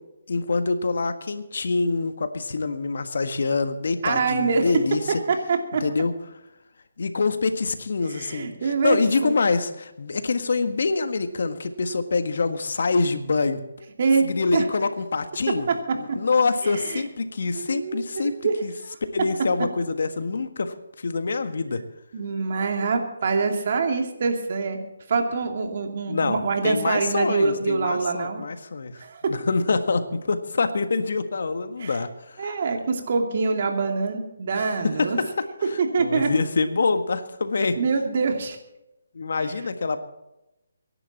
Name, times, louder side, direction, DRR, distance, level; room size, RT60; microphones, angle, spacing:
voice 1, 0.3-5.2 5.8-6.1 7.0-13.9 14.2-15.7 15.9-18.3 18.6-18.7 19.1-20.7 21.0-21.8 26.1-29.0 29.3-32.5 34.5-35.1 36.0-37.8 39.1-40.0, left 4 dB, 65° left, 9 dB, 1.5 m, -25 dB
voice 2, 4.0-4.7 5.3-5.8 8.1-9.3 14.0-14.7 15.5-16.2 16.6-17.0 17.5-18.6 22.1-24.8 25.1-28.4 29.0-29.3 31.8-32.0 32.4-35.2 35.8-36.3 37.8-38.6, right 4 dB, 50° right, 4 dB, 2.5 m, -25 dB
24.0 x 11.0 x 4.2 m, 0.93 s
figure-of-eight pair, 150°, 0 cm